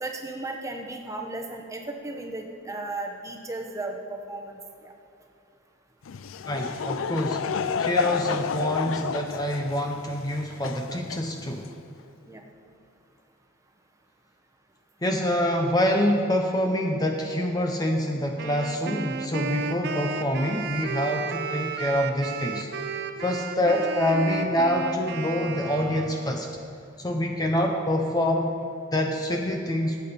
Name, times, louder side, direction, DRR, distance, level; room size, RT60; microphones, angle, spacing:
voice 1, 0.0-4.0 4.3-4.9 12.3-12.4, right 2 dB, 15° right, 2 dB, 1.0 m, -35 dB
Laughter / Crowd, 6.0-11.8, left 6 dB, 75° left, 0.4 m, -30 dB
voice 2, 6.5-7.5 7.8-11.7 15.0-26.5 27.0-28.6 28.9-30.0, left 1 dB, 20° left, 2 dB, 0.7 m, -26 dB
Wind instrument woodwind instrument, 18.4-26.5, right 5 dB, 50° right, 0.6 m, -33 dB
17.0 x 8.6 x 4.2 m, 2.6 s
head